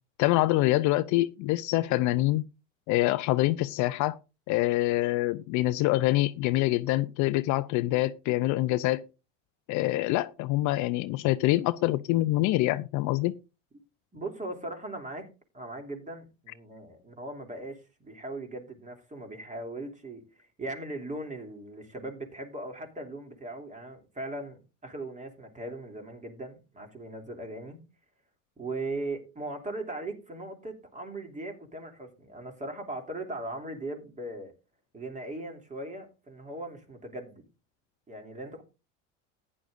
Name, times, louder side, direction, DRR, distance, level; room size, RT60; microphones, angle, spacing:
voice 1, 0.2-2.4 2.9-4.2 4.5-9.0 9.7-13.4, left 17 dB, 50° left, 0.5 m, -25 dB
voice 2, 14.1-15.3 15.5-27.8 28.6-34.5 34.9-37.4 38.1-38.6, right 2 dB, 20° right, 2.8 m, -39 dB
14.5 x 9.8 x 2.5 m
supercardioid pair, 95°, 37 cm